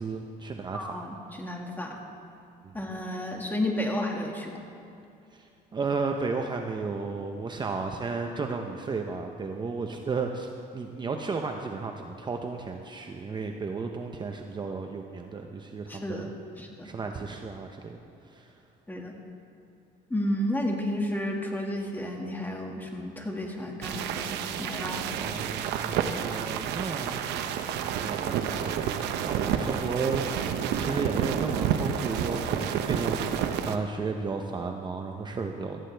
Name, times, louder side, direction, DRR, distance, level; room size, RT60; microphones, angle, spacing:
voice 1, 0.0-1.1 2.6-2.7 5.3-16.3 16.8-18.0 18.2-18.5 25.1-27.2 28.0-35.8, right 4 dB, 25° right, 4 dB, 0.7 m, -33 dB
voice 2, 0.7-2.0 2.7-4.5 15.9-16.3 16.6-16.9 18.9-19.1 20.1-25.0, left 1 dB, 10° left, 1 dB, 1.9 m, -32 dB
sound 1, 23.8-33.8, right 8 dB, 85° right, 0.8 m, -30 dB
18.0 x 13.0 x 3.4 m, 2.7 s
cardioid pair, 110°, 17 cm